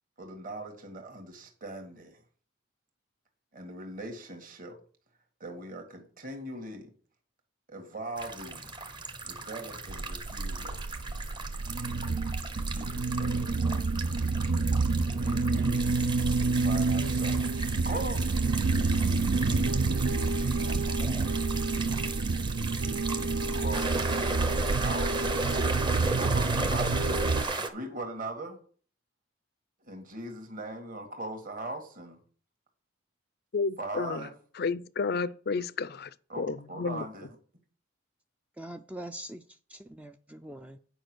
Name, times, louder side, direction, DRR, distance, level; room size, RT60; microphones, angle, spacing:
voice 1, 0.2-2.2 3.5-4.8 5.4-6.9 7.7-8.7 9.2-11.0 12.6-13.9 15.0-15.9 16.4-18.4 19.7-21.4 23.3-24.3 24.8-25.3 26.1-27.3 27.6-28.6 29.9-32.2 33.8-34.3 35.0-35.2 36.3-37.3, right 1 dB, 40° right, 1.8 m, -40 dB
sound 1, 8.2-27.7, right 3 dB, 20° right, 0.9 m, -36 dB
sound 2, 9.9-27.4, right 3 dB, 70° right, 0.5 m, -28 dB
voice 2, 33.5-34.3 34.6-36.1 36.4-37.0, left 4 dB, 50° left, 0.5 m, -31 dB
voice 3, 38.6-40.8, right 1 dB, 5° right, 0.4 m, -43 dB
9.1 x 5.2 x 6.3 m
head